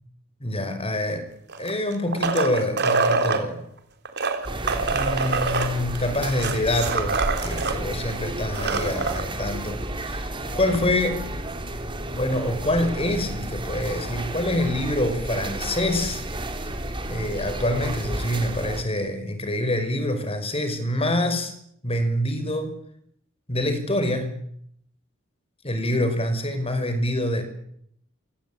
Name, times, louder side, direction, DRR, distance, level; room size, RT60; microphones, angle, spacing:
voice 1, 0.4-1.3 1.6-3.6 4.9-11.2 12.1-16.2 16.6-16.7 17.1-21.5 21.8-22.8 23.5-24.4 25.6-27.4, left 1 dB, 30° left, 9 dB, 5.5 m, -26 dB
sound 1, 1.5-3.4 4.1-7.8 8.1-8.2 8.5-9.2 10.7-10.8, right 4 dB, 55° right, 3.9 m, -25 dB
sound 2, 4.4-18.8, right 1 dB, 25° right, 3.6 m, -32 dB
27.0 x 25.0 x 8.8 m, 0.71 s
head